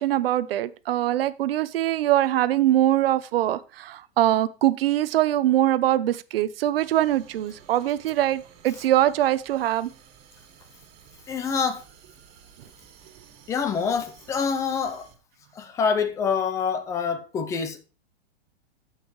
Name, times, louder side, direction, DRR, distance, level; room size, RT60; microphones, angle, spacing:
voice 1, 0.0-9.9, right 13 dB, 65° right, 0.8 m, -23 dB
sound 1, 6.8-15.2, right 8 dB, 35° right, 2.1 m, -53 dB
voice 2, 11.3-11.8 13.5-15.1 15.5-17.8, left 6 dB, 10° left, 0.4 m, -26 dB
14.5 x 5.7 x 3.1 m
hypercardioid pair, 155°, 31 cm